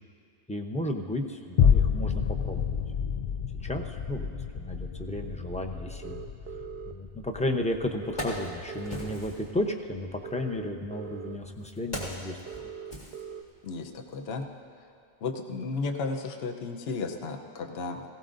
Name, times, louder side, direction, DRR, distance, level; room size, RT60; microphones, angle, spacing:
voice 1, 0.5-2.8 3.6-4.3 4.5-6.2 6.9-12.4, left 1 dB, 10° left, 3 dB, 0.6 m, -33 dB
sound 1, 1.6-10.1 10.6-10.7, left 7 dB, 80° left, 0.3 m, -29 dB
sound 2, 6.0-6.9 8.0-9.1 10.2-11.4 12.5-13.4, right 7 dB, 65° right, 0.8 m, -41 dB
Wood, 7.3-7.4 7.9-9.5 10.5-13.8 14.1-14.3, equal, 40° left, 2.3 m, -39 dB
voice 2, 13.6-14.5 15.2-18.0, left 4 dB, 60° left, 5 dB, 1.0 m, -34 dB
18.5 x 16.5 x 2.6 m, 2.6 s
omnidirectional pair, 1.2 m